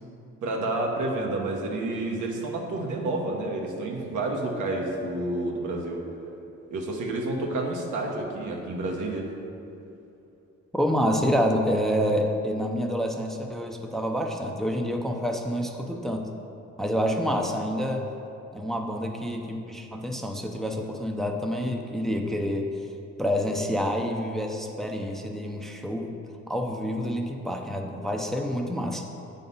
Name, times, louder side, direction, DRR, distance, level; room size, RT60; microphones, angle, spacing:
voice 1, 0.4-6.0 6.7-9.3, right 2 dB, 80° right, 0 dB, 1.2 m, -29 dB
voice 2, 10.7-16.2 16.8-18.1 18.5-22.7 23.2-26.1 26.5-29.1, equal, ahead, 2 dB, 0.6 m, -28 dB
8.3 x 4.0 x 5.4 m, 2.7 s
cardioid pair, 90°, 30 cm